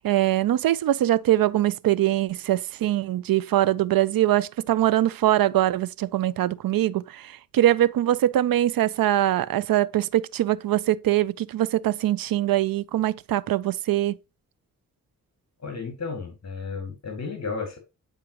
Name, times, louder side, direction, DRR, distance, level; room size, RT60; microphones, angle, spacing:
voice 1, 0.0-14.2, right 13 dB, 85° right, 0.5 m, -22 dB
voice 2, 15.6-17.8, left 4 dB, 50° left, 2.1 m, -33 dB
9.1 x 4.8 x 2.9 m
wide cardioid pair, 110°, 34 cm